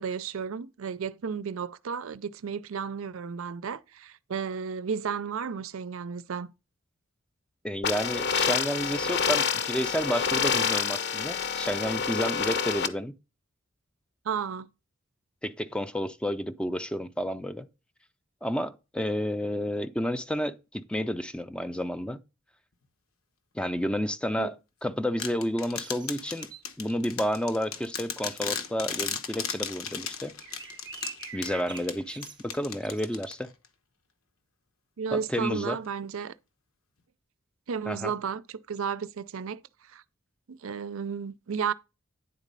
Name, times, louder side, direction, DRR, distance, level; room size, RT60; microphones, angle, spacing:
voice 1, 0.0-6.5 14.2-14.7 24.4-24.5 35.0-36.3 37.7-39.6 39.9-40.0 40.5-41.7, right 6 dB, 75° right, 0.5 m, -33 dB
voice 2, 7.6-13.1 15.4-17.7 18.4-22.2 23.5-24.5 24.8-26.5 26.8-30.3 31.3-33.5 35.1-35.8 37.9-38.1, equal, 5° left, 0.5 m, -31 dB
sound 1, 7.8-12.9, left 6 dB, 55° left, 0.7 m, -27 dB
sound 2, 25.2-33.7, left 7 dB, 90° left, 1.1 m, -36 dB
sound 3, 25.8-26.7 30.3-33.2, right 6 dB, 20° right, 0.8 m, -45 dB
9.7 x 4.1 x 5.3 m
head